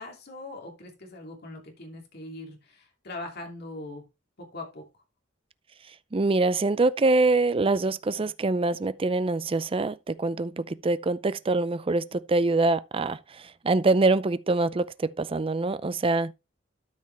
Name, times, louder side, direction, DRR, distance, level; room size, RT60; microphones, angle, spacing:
voice 1, 0.0-4.1 4.4-4.9, left 2 dB, 55° left, 2.7 m, -41 dB
voice 2, 6.1-16.3, right 3 dB, 30° right, 0.5 m, -24 dB
12.5 x 5.2 x 3.3 m
head